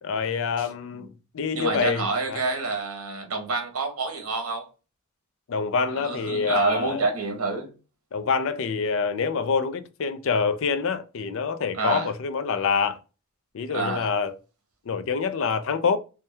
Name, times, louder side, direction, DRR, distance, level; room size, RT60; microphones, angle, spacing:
voice 1, 0.0-2.4 5.5-7.0 8.1-13.0 13.5-14.4 14.9-16.0, left 5 dB, 65° left, 0.5 m, -26 dB
voice 2, 1.5-4.7 6.0-7.7 11.7-12.1 13.7-14.1, right 3 dB, 80° right, 1.2 m, -28 dB
4.3 x 2.2 x 3.3 m
head